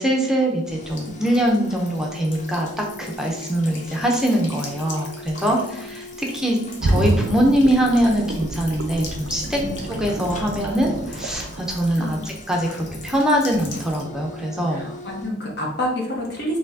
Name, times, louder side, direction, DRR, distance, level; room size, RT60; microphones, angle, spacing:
voice 1, 0.0-9.6 9.9-14.8, equal, 5° right, 0 dB, 0.5 m, -22 dB
sound 1, 0.6-15.3, left 1 dB, 40° left, 0.6 m, -41 dB
Buzz / Water tap faucet / Trickle dribble, 0.8-14.0, left 3 dB, 85° left, 0.9 m, -42 dB
sound 2, 6.8-12.6 13.0-13.1, right 2 dB, 80° right, 0.5 m, -28 dB
voice 2, 14.7-16.6, left 1 dB, 65° left, -1 dB, 1.1 m, -28 dB
4.4 x 3.2 x 2.6 m, 0.77 s
head